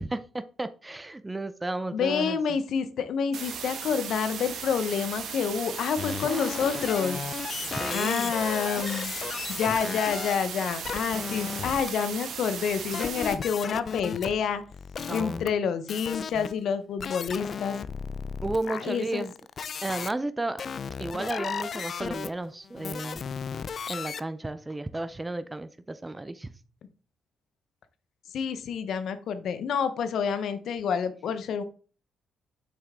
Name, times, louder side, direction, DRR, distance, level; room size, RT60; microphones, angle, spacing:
voice 1, 0.0-2.4 7.6-8.3 15.1-15.4 18.4-19.3 19.8-20.6 21.0-23.2 23.9-26.5, right 2 dB, 15° right, 12 dB, 0.5 m, -33 dB
voice 2, 1.9-7.2 7.9-9.1 9.5-14.6 15.1-17.8 18.7-19.3 28.3-31.6, left 6 dB, 70° left, 11 dB, 0.9 m, -28 dB
sound 1, 3.3-13.3, right 6 dB, 70° right, 1.6 m, -37 dB
sound 2, 6.0-10.4 10.8-11.9 12.9-15.5 15.9-16.6 17.0-20.1 20.6-24.2, left 6 dB, 50° left, 0.4 m, -35 dB
6.7 x 5.6 x 3.7 m, 0.39 s
cardioid pair, 90°, 0 cm